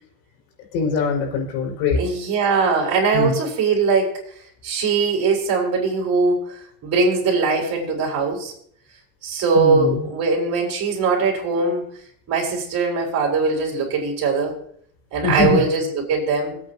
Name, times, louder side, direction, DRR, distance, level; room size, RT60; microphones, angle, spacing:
voice 1, 0.7-2.0 3.1-3.4 9.5-10.0 15.2-15.6, left 5 dB, 60° left, 1 dB, 5.7 m, -22 dB
voice 2, 2.0-4.2 4.6-8.5 9.2-11.8 12.3-14.6 15.1-16.6, right 4 dB, 35° right, -1 dB, 4.8 m, -21 dB
23.5 x 8.7 x 3.0 m, 0.62 s
supercardioid pair, 120°, 44 cm